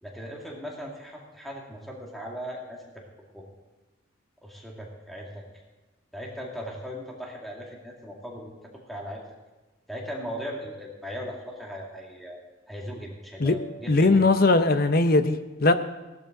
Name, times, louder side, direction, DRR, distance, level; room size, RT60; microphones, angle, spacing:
voice 1, 0.0-3.0 3.3-3.5 4.4-5.4 6.1-8.6 8.9-9.2 9.9-12.4 12.7-14.2, equal, ahead, -2 dB, 2.2 m, -38 dB
voice 2, 13.9-15.7, left 2 dB, 50° left, 10 dB, 0.8 m, -20 dB
17.5 x 12.0 x 3.8 m, 1.2 s
head